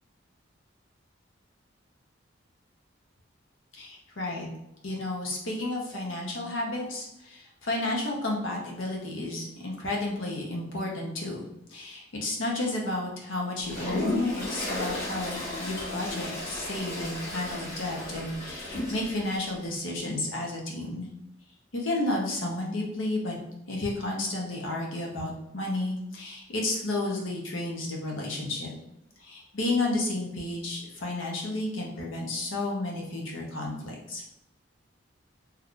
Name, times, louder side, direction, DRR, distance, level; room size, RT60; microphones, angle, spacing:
voice 1, 3.7-4.5 4.8-21.1 21.7-23.4 23.7-28.7 29.2-34.2, left 2 dB, 80° left, -1 dB, 0.9 m, -32 dB
Toilet flush, 13.6-19.4, left 1 dB, 35° left, 1.3 m, -34 dB
3.0 x 2.4 x 3.6 m, 0.82 s
head